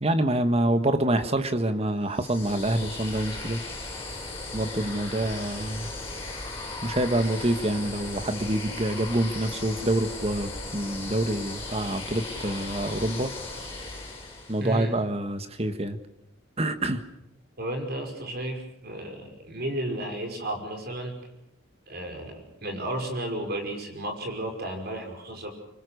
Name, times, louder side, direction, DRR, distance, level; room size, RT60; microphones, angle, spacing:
voice 1, 0.0-3.6 4.5-5.9 6.8-13.3 14.5-16.0 16.6-17.0, right 1 dB, 30° right, 9 dB, 1.6 m, -26 dB
sound 1, 2.1-14.8, left 2 dB, 15° left, 7.4 m, -37 dB
voice 2, 14.6-15.0 17.6-21.2 21.9-25.5, right 1 dB, 50° right, 4 dB, 5.6 m, -33 dB
26.0 x 24.0 x 6.6 m, 0.84 s
head